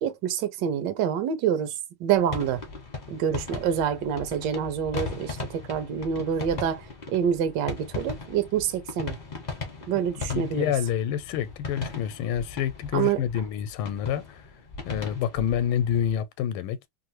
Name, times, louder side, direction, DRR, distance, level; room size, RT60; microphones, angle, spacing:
voice 1, 0.0-2.6 3.1-9.2 9.9-10.7 12.9-13.2, right 8 dB, 70° right, 1.2 m, -27 dB
sound 1, 2.1-16.2, left 4 dB, 40° left, 0.6 m, -38 dB
voice 2, 10.3-14.5 14.8-16.8, left 9 dB, 85° left, 1.4 m, -28 dB
3.2 x 2.5 x 2.9 m
omnidirectional pair, 2.3 m